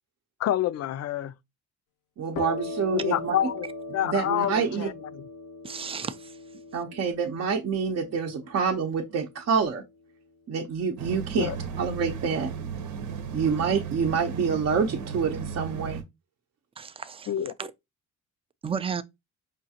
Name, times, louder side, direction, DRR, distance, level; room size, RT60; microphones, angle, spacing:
voice 1, 0.4-1.3 2.9-3.7 3.9-5.2 11.4-11.6 17.3-17.5, left 11 dB, 55° left, 0.4 m, -28 dB
voice 2, 2.2-3.3 4.0-4.9 6.7-9.8 10.5-11.5 11.8-12.5 13.3-16.0, right 6 dB, 55° right, 0.7 m, -27 dB
sound 1, 2.3-9.8, left 2 dB, 85° left, 0.8 m, -40 dB
voice 3, 5.6-6.4 16.8-17.7 18.6-19.0, right 6 dB, 20° right, 0.3 m, -34 dB
sound 2, 11.0-16.0, right 6 dB, 80° right, 0.8 m, -35 dB
5.1 x 2.4 x 2.8 m
cardioid pair, 90°, 30 cm